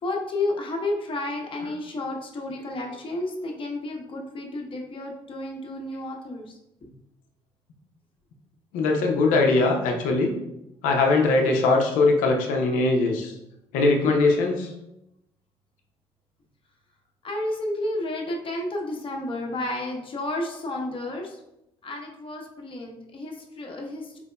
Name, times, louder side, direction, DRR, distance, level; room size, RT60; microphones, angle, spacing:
voice 1, 0.0-6.6 17.2-21.4 21.8-24.2, left 2 dB, 40° left, 0 dB, 0.9 m, -31 dB
voice 2, 8.7-10.3 10.8-13.3 13.7-14.7, left 3 dB, 75° left, 2 dB, 0.7 m, -21 dB
4.2 x 2.8 x 2.2 m, 0.86 s
hypercardioid pair, 50°, 14 cm